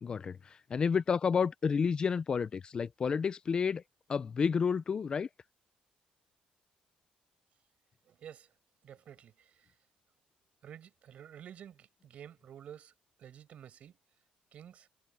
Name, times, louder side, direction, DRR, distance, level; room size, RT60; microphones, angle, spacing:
voice 1, 0.0-3.8 4.1-5.3, left 6 dB, 35° left, 0.5 m, -30 dB
voice 2, 8.0-8.5 8.8-9.7 10.6-12.9 13.2-14.0 14.5-14.9, right 9 dB, 55° right, 6.4 m, -51 dB
cardioid pair, 140°, 3 cm